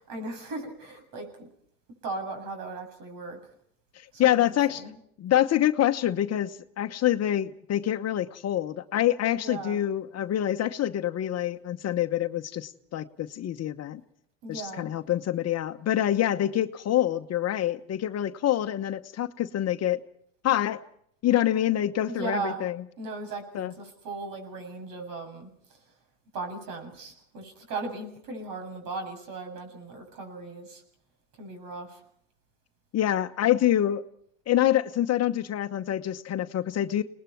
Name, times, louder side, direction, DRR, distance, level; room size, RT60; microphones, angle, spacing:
voice 1, 0.0-1.5 2.0-3.4 4.1-5.0 9.3-9.8 14.4-14.9 22.1-22.6 23.0-25.8 26.3-30.8 31.4-32.0, right 3 dB, 60° right, 5 dB, 7.7 m, -37 dB
voice 2, 3.9-4.8 5.2-14.0 14.5-20.0 20.4-20.8 21.2-22.8 23.5-23.7 32.9-34.0 34.5-37.0, left 12 dB, 40° left, 10 dB, 1.0 m, -26 dB
30.0 x 20.0 x 4.6 m, 0.68 s
supercardioid pair, 90°, 38 cm